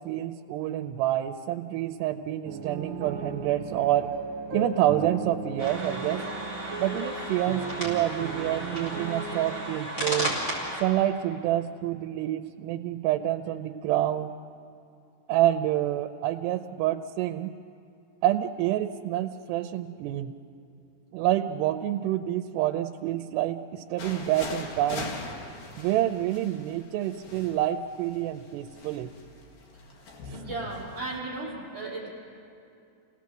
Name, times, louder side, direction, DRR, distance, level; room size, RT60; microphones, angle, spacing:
voice 1, 0.0-4.1 4.5-6.3 6.8-10.4 10.8-14.3 15.3-17.5 18.2-20.4 21.1-25.1 25.8-29.1 30.3-30.4, right 13 dB, 85° right, 6 dB, 2.8 m, -27 dB
sound 1, 2.4-9.8, right 4 dB, 65° right, 2.6 m, -36 dB
sound 2, 5.6-10.8, right 1 dB, 20° left, 4.9 m, -34 dB
sound 3, 24.0-31.2, left 3 dB, 55° left, 3.1 m, -41 dB
voice 2, 30.3-32.1, right 2 dB, 10° right, -7 dB, 5.3 m, -35 dB
29.5 x 17.5 x 7.8 m, 2.6 s
omnidirectional pair, 4.8 m